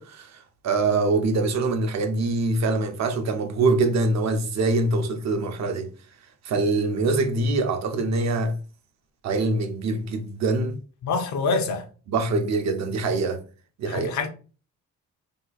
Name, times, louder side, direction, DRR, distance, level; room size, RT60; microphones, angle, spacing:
voice 1, 0.0-5.9 6.4-8.6 9.2-10.8 12.1-13.4 13.8-14.1, right 3 dB, 60° right, 0.7 m, -24 dB
voice 2, 11.0-11.9 13.9-14.3, left 4 dB, 70° left, 0.8 m, -25 dB
2.9 x 2.2 x 4.1 m
cardioid pair, 90°, 30 cm